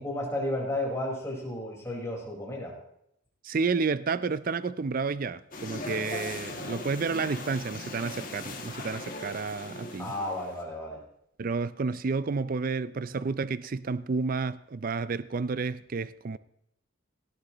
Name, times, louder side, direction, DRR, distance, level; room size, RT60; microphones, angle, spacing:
voice 1, 0.0-2.7 10.0-11.0, left 1 dB, 15° left, 4.5 m, -33 dB
voice 2, 3.4-10.1 11.4-16.4, right 4 dB, 40° right, 0.4 m, -30 dB
sound 1, 5.5-10.6, left 2 dB, 40° left, 2.1 m, -39 dB
18.0 x 13.5 x 3.0 m
head